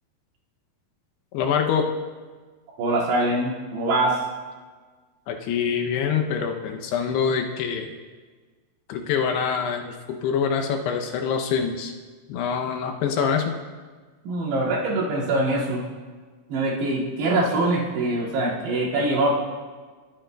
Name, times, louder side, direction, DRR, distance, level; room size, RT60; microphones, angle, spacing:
voice 1, 1.3-1.9 5.3-7.9 8.9-11.9 12.3-13.6, left 6 dB, 80° left, 3 dB, 2.8 m, -25 dB
voice 2, 2.8-4.2 14.2-15.8 16.5-19.3, right 2 dB, 85° right, -7 dB, 4.5 m, -23 dB
20.5 x 8.8 x 2.3 m, 1.4 s
omnidirectional pair, 4.8 m